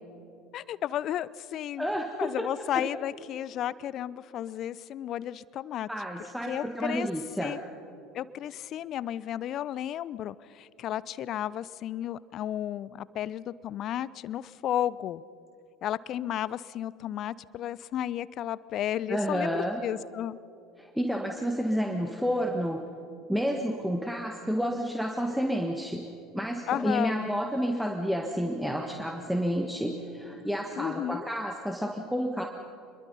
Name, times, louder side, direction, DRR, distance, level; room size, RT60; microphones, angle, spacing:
voice 1, 0.5-1.9 2.2-5.9 6.5-7.1 7.4-7.6 8.1-15.2 15.8-20.4 26.7-27.2 30.8-31.3, left 11 dB, 45° left, 20 dB, 0.5 m, -33 dB
voice 2, 1.8-2.4 2.7-2.8 5.9-7.6 19.1-19.8 20.8-22.8 23.3-32.4, equal, ahead, 2 dB, 1.6 m, -30 dB
26.5 x 22.0 x 5.6 m, 2.6 s
figure-of-eight pair, 65°, 0 cm